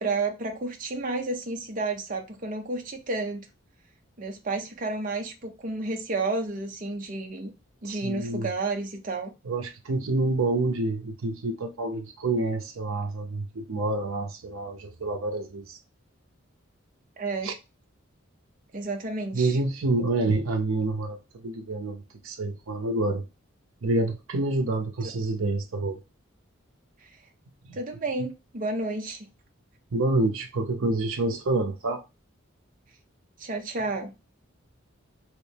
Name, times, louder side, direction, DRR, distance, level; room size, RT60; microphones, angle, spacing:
voice 1, 0.0-3.5 4.2-7.5 7.8-9.3 17.2-17.5 18.7-19.6 27.0-27.1 27.7-29.3 33.4-34.1, right 3 dB, 40° right, 0.6 m, -31 dB
voice 2, 7.8-8.5 9.4-15.8 17.4-17.5 19.3-23.3 23.8-26.0 29.9-32.0, right 2 dB, 80° right, 0.6 m, -28 dB
3.1 x 3.0 x 3.2 m
head